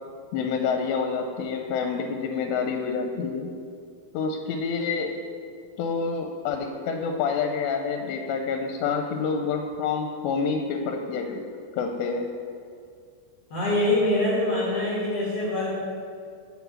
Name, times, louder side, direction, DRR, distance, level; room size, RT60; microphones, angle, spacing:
voice 1, 0.3-3.5 4.1-5.1 5.8-11.4 11.8-12.3, left 5 dB, 85° left, 3 dB, 2.8 m, -28 dB
voice 2, 13.5-15.7, left 1 dB, 45° left, -8 dB, 2.2 m, -24 dB
7.4 x 5.9 x 7.0 m, 2.2 s
omnidirectional pair, 5.0 m